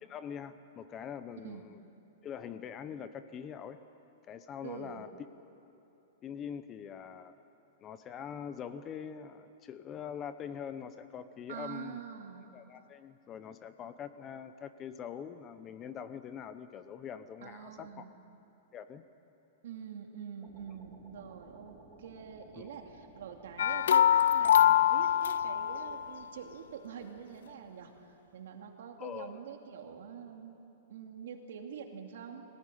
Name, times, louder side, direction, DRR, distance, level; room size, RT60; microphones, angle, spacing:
voice 1, 0.0-1.8 2.2-3.8 4.3-5.1 6.2-7.3 7.8-12.0 12.5-18.0 18.7-19.0 29.0-29.4, left 8 dB, 20° left, 11 dB, 0.7 m, -43 dB
voice 2, 4.6-5.0 11.5-12.5 17.4-18.1 19.6-30.6 30.9-32.5, right 7 dB, 70° right, 3 dB, 2.5 m, -45 dB
sound 1, 20.4-24.9, right 3 dB, 10° right, 3.4 m, -57 dB
sound 2, 23.6-26.1, left 10 dB, 90° left, 0.5 m, -24 dB
23.0 x 18.0 x 9.9 m, 2.9 s
supercardioid pair, 165°, 0 cm